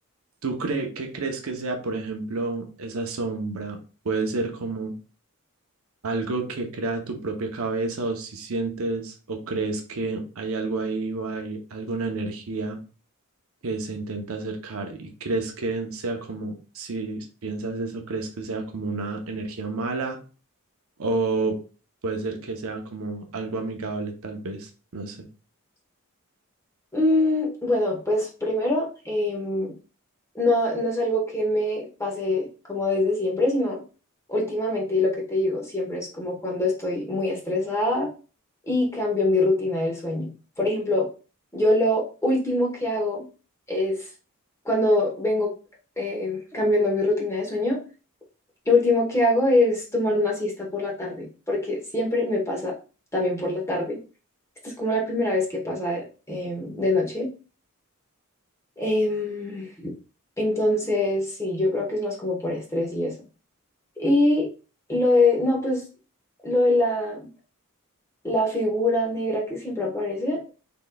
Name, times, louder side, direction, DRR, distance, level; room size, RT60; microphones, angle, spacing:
voice 1, 0.4-3.8 4.0-4.9 6.0-12.8 13.6-20.2 21.0-21.6 22.0-25.3, right 3 dB, 70° right, 4 dB, 0.7 m, -30 dB
voice 2, 26.9-29.7 30.3-33.8 34.3-38.1 38.7-40.3 40.6-41.1 41.5-43.2 43.7-44.1 44.6-45.5 46.0-47.8 48.7-52.7 53.1-54.0 54.6-57.3 58.8-59.9 60.4-63.1 64.0-64.5 64.9-65.8 66.4-67.3 68.2-70.5, left 1 dB, 15° left, -2 dB, 1.1 m, -24 dB
3.9 x 3.8 x 2.2 m, 0.35 s
head